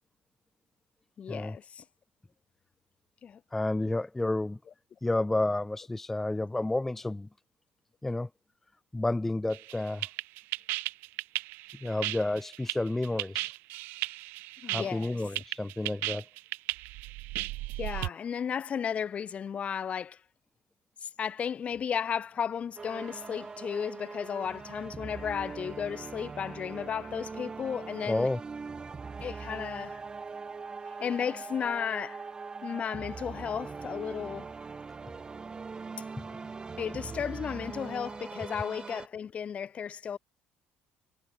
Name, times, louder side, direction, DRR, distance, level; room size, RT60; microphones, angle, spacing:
voice 1, 1.2-1.8 3.2-3.4 14.6-15.2 17.8-20.2 21.0-28.3 29.2-30.0 31.0-32.3 32.6-34.5 36.8-40.2, left 7 dB, 40° left, 0.8 m, -34 dB
voice 2, 3.5-4.6 5.0-7.3 8.0-8.3 8.9-10.1 11.8-13.5 14.7-16.2 28.0-28.4, left 2 dB, 10° left, 0.4 m, -30 dB
sound 1, 9.5-18.1, right 21 dB, 85° right, 1.0 m, -35 dB
sound 2, 22.8-39.1, right 4 dB, 25° right, 1.3 m, -41 dB
cardioid pair, 115°, 3 cm